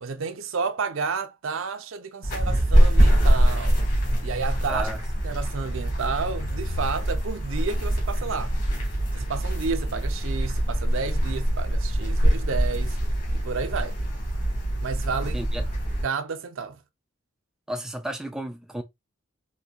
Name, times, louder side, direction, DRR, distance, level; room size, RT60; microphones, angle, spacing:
voice 1, 0.0-3.8 4.2-4.9 5.2-8.5 9.1-13.0 13.3-14.0 14.8-15.4 16.0-16.8, right 5 dB, 70° right, 0.6 m, -31 dB
sound 1, 2.2-16.0, right 1 dB, 35° left, 1.8 m, -24 dB
voice 2, 4.7-5.0 15.3-15.6 17.7-18.8, right 1 dB, 5° right, 0.3 m, -32 dB
4.2 x 2.7 x 2.4 m
head